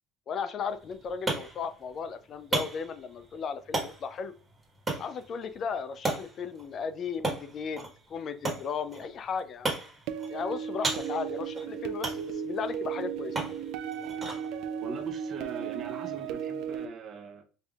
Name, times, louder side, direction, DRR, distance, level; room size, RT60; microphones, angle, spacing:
voice 1, 0.3-4.3 5.0-9.7 10.3-13.3, left 6 dB, 40° left, 0.3 m, -35 dB
sound 1, 0.7-16.3, right 2 dB, 20° right, 1.4 m, -38 dB
sound 2, 10.1-16.9, right 8 dB, 70° right, 0.3 m, -35 dB
voice 2, 14.8-17.4, right 4 dB, 45° right, 0.7 m, -41 dB
5.1 x 2.7 x 2.3 m
cardioid pair, 125°, 0 cm